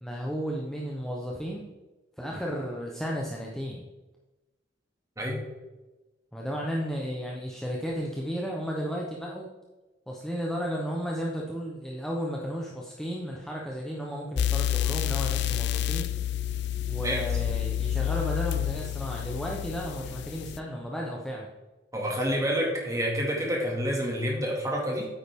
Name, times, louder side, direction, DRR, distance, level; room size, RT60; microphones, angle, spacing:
voice 1, 0.0-1.6 2.2-3.9 6.3-9.5 10.1-16.1 16.9-21.5, equal, 5° left, -3 dB, 0.8 m, -33 dB
sound 1, 14.4-20.6, left 10 dB, 60° left, 0.3 m, -29 dB
voice 2, 21.9-25.1, equal, 15° right, -2 dB, 2.2 m, -28 dB
9.3 x 8.7 x 3.6 m, 1.1 s
head